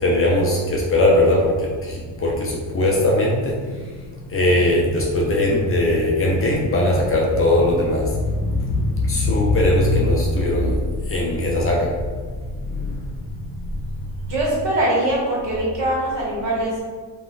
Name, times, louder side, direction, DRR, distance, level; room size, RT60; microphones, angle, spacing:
voice 1, 0.0-1.5 1.9-3.5 4.3-8.1 8.4-10.7 11.1-11.9 12.7-12.9, left 1 dB, 30° left, -3 dB, 0.4 m, -19 dB
voice 2, 14.3-16.8, right 1 dB, 70° right, -5 dB, 1.2 m, -22 dB
2.4 x 2.3 x 3.7 m, 1.5 s
cardioid pair, 145°, 44 cm